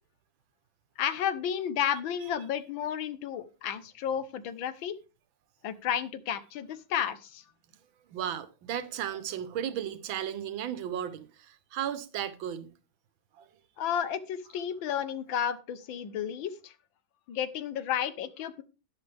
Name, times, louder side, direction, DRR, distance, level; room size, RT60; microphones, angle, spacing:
voice 1, 1.0-4.9 5.6-7.4 13.8-16.7 17.3-18.6, left 9 dB, 75° left, 1.7 m, -32 dB
voice 2, 8.1-12.7 13.4-13.5, right 10 dB, 80° right, 1.7 m, -35 dB
12.0 x 10.0 x 3.4 m
omnidirectional pair, 2.2 m